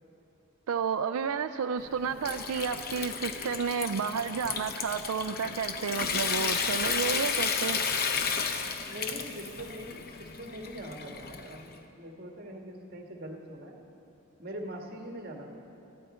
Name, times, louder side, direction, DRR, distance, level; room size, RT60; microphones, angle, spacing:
voice 1, 0.7-7.8, right 6 dB, 90° right, 9 dB, 0.4 m, -31 dB
Water tap faucet / Sink (filling or washing) / Trickle dribble, 1.8-11.7, left 5 dB, 45° left, 0.8 m, -33 dB
voice 2, 8.9-13.8 14.4-15.5, equal, 45° right, 1 dB, 1.7 m, -42 dB
22.0 x 14.5 x 4.4 m, 2.9 s
head